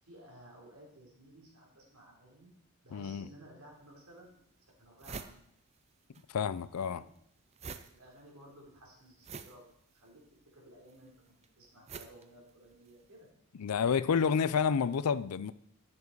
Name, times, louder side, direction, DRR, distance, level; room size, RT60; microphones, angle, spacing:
voice 1, 0.0-2.5 2.8-4.4 4.8-5.4 6.8-7.1 7.8-9.6 9.9-10.2 10.5-13.3, right 1 dB, 80° right, 3.5 m, -56 dB
voice 2, 2.9-3.3 6.3-7.0 13.6-15.5, left 6 dB, 90° left, 0.5 m, -29 dB
sound 1, 3.8-3.9 4.4-4.5 4.7-6.3 6.5-13.1, right 5 dB, 30° right, 0.5 m, -48 dB
10.5 x 7.4 x 4.7 m
head